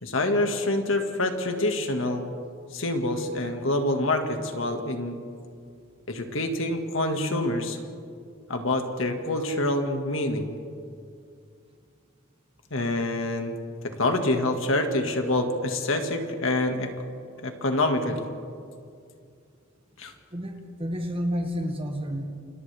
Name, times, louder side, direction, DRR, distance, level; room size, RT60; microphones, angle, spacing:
voice 1, 0.0-2.3 2.7-5.2 6.1-7.8 8.5-10.5 12.7-13.6 13.8-16.9 17.4-18.3 20.0-20.1, left 2 dB, 70° left, 4 dB, 1.9 m, -26 dB
voice 2, 20.3-22.2, equal, 30° right, 3 dB, 2.0 m, -30 dB
28.5 x 27.0 x 3.5 m, 2.3 s
head